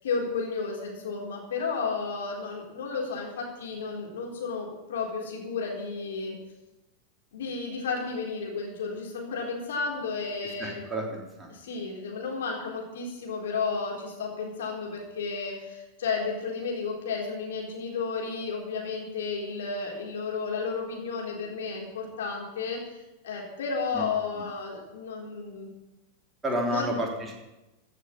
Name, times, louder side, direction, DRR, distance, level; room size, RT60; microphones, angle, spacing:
voice 1, 0.0-6.4 7.3-10.8 11.5-25.7 26.7-26.9, left 4 dB, 60° left, -1 dB, 4.0 m, -32 dB
voice 2, 10.6-11.5 23.9-24.1 24.3-24.4 26.4-27.3, equal, 15° right, -1 dB, 3.5 m, -30 dB
15.5 x 6.7 x 8.8 m, 1.0 s
figure-of-eight pair, 90°, 0 cm